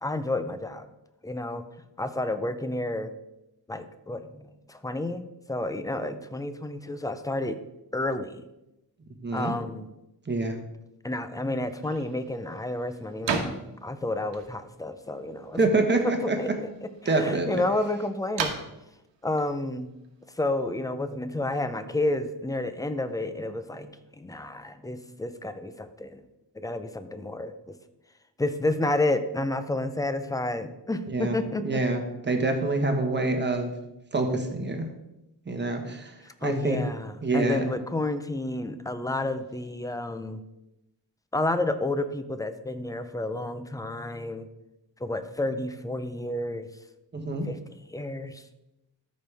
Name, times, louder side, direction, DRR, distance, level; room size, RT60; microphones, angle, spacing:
voice 1, 0.0-0.9 1.2-1.6 2.0-3.1 3.7-4.4 4.7-5.2 5.5-7.6 7.9-8.4 9.3-9.9 11.0-15.7 16.0-18.6 19.2-19.9 20.3-26.2 26.5-27.7 28.4-31.8 36.4-40.4 41.3-44.5 45.0-46.7 47.4-47.6 47.9-48.4, left 2 dB, 10° left, 11 dB, 0.5 m, -30 dB
voice 2, 9.2-9.5 10.3-10.6 15.6-16.4 17.0-17.6 31.1-31.4 31.6-32.0 32.3-33.7 34.1-34.9 35.5-36.1 36.4-36.8 37.2-37.6 47.1-47.5, right 2 dB, 25° right, 4 dB, 1.3 m, -26 dB
sound 1, 11.6-20.8, right 5 dB, 85° right, 1.2 m, -38 dB
13.0 x 5.3 x 3.4 m, 0.92 s
cardioid pair, 110°, 42 cm